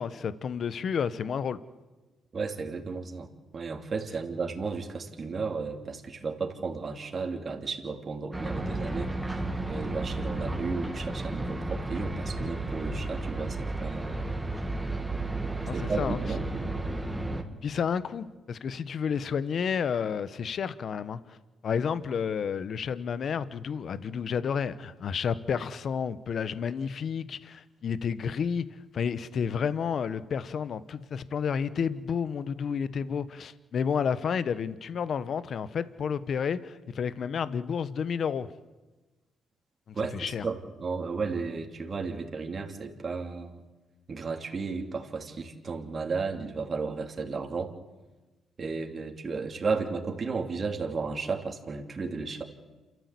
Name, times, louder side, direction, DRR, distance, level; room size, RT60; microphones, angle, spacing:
voice 1, 0.0-1.6 15.6-16.2 17.6-21.4 21.6-28.7 28.9-38.5 39.9-40.5, left 7 dB, 55° left, 1.1 m, -31 dB
voice 2, 2.3-14.3 15.7-16.7 39.9-43.6 44.1-47.7 48.6-52.4, right 4 dB, 40° right, 3.1 m, -34 dB
sound 1, 8.3-17.4, right 2 dB, 5° right, 2.7 m, -33 dB
28.0 x 14.0 x 8.5 m
cardioid pair, 90°, 0 cm